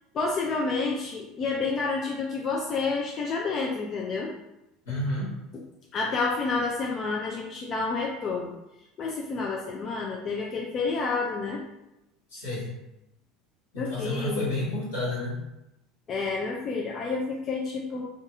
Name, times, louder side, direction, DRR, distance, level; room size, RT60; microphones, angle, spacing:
voice 1, 0.1-4.3 5.9-8.6 9.0-11.6 13.8-14.5 16.1-18.1, left 4 dB, 35° left, -1 dB, 0.3 m, -29 dB
voice 2, 4.8-5.3 12.3-12.7 13.7-15.4, left 1 dB, 70° left, -7 dB, 1.4 m, -30 dB
2.7 x 2.4 x 3.4 m, 0.93 s
figure-of-eight pair, 70°, 0 cm